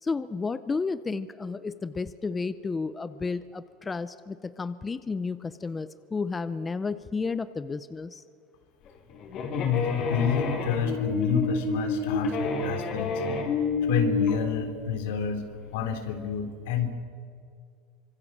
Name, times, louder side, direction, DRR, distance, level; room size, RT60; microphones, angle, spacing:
voice 1, 0.0-8.2, left 4 dB, 15° left, 13 dB, 0.6 m, -32 dB
sound 1, 8.9-14.4, left 4 dB, 40° left, 4.3 m, -28 dB
voice 2, 9.5-15.5 15.7-16.9, left 7 dB, 80° left, 6 dB, 3.6 m, -29 dB
25.5 x 24.0 x 7.3 m, 2.3 s
supercardioid pair, 150°, 0 cm